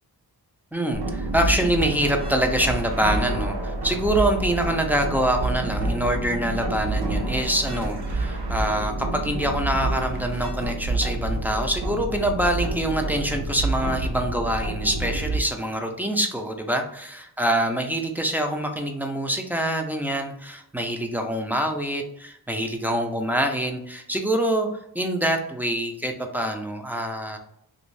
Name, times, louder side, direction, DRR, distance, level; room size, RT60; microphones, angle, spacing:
voice 1, 0.7-24.7 24.9-27.4, right 1 dB, 5° right, 4 dB, 0.4 m, -25 dB
sound 1, 0.9-15.4, right 2 dB, 70° right, 0.8 m, -28 dB
3.0 x 2.6 x 3.1 m, 0.76 s
wide cardioid pair, 95°, 40 cm